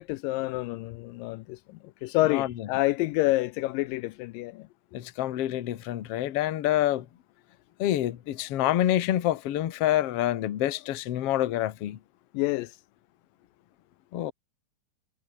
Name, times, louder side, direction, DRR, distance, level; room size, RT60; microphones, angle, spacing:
voice 1, 0.0-4.7 12.3-12.8, left 18 dB, 80° left, 2.3 m, -28 dB
voice 2, 4.9-7.1 7.8-12.0 14.1-14.3, left 13 dB, 60° left, 1.8 m, -27 dB
omnidirectional pair, 4.0 m